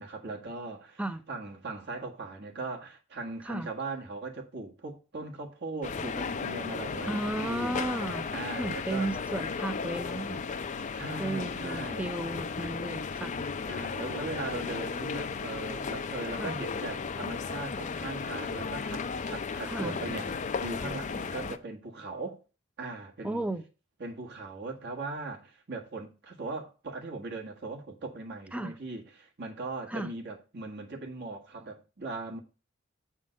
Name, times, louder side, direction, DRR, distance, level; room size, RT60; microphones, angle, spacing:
voice 1, 0.0-1.0 1.3-7.8 8.3-9.1 10.8-12.1 13.7-22.4 22.8-23.5 24.0-32.4, right 3 dB, 55° right, 1.5 m, -39 dB
sound 1, 5.8-21.6, left 5 dB, 40° left, 0.5 m, -35 dB
voice 2, 7.1-8.3 8.6-10.5 11.2-13.3 16.4-16.6 19.7-19.9 23.2-23.6 28.5-28.7 29.9-30.1, right 1 dB, 5° right, 0.5 m, -34 dB
7.8 x 3.7 x 6.3 m
head